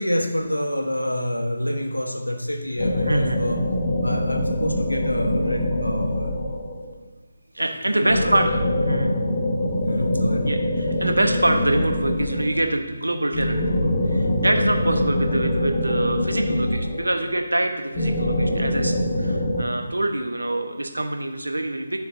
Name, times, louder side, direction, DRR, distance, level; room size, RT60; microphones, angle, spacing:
voice 1, 0.0-3.7 4.0-6.4 7.6-8.4 9.8-10.5, equal, 85° left, 3 dB, 1.3 m, -27 dB
sound 1, 2.8-7.0 8.1-12.7 13.3-17.3 17.9-19.6, left 1 dB, 30° left, 1.3 m, -24 dB
voice 2, 3.1-3.4 7.5-8.5 8.8-9.1 10.4-22.1, right 1 dB, 75° right, 5 dB, 1.1 m, -25 dB
12.0 x 6.6 x 2.8 m, 1.2 s
figure-of-eight pair, 150°, 0 cm